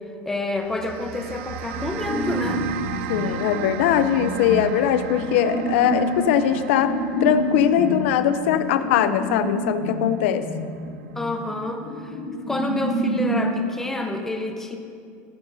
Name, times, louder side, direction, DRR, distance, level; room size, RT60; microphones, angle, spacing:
voice 1, 0.2-2.6 3.3-3.5 11.1-12.2 12.5-14.8, left 2 dB, 5° left, 4 dB, 0.7 m, -28 dB
sound 1, 0.6-11.1, right 9 dB, 90° right, 0.5 m, -37 dB
sound 2, 2.0-13.5, right 1 dB, 60° left, 2.8 m, -28 dB
voice 2, 3.1-6.9 7.2-10.4, left 10 dB, 80° left, 10 dB, 0.5 m, -21 dB
15.0 x 9.6 x 2.6 m, 2.4 s
supercardioid pair, 160°, 7 cm